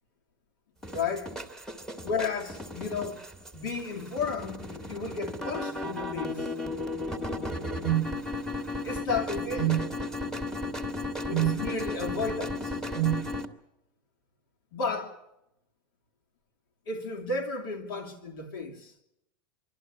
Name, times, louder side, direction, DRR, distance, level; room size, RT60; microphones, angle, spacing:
sound 1, 0.8-13.4, left 2 dB, 5° left, 1.4 m, -35 dB
voice 1, 0.9-1.3 2.0-3.2 3.5-6.5 8.8-9.9 11.3-12.8 14.7-15.2 16.9-18.9, left 4 dB, 85° left, 2.9 m, -33 dB
sound 2, 7.8-8.1 9.6-9.9 11.3-11.6 13.0-13.3, right 15 dB, 50° right, 0.7 m, -26 dB
25.0 x 12.5 x 9.7 m
supercardioid pair, 145°, 11 cm